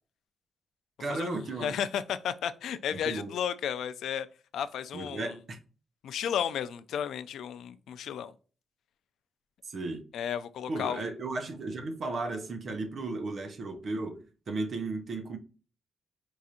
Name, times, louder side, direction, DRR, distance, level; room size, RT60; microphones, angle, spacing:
voice 1, 1.0-1.8 2.9-3.3 4.9-5.6 9.6-10.0 10.7-15.4, right 3 dB, 45° right, 0.7 m, -35 dB
voice 2, 1.6-4.3 4.5-5.3 6.0-8.3 10.1-11.0, left 8 dB, 85° left, 0.3 m, -33 dB
4.6 x 2.5 x 2.7 m
wide cardioid pair, 150°, 0 cm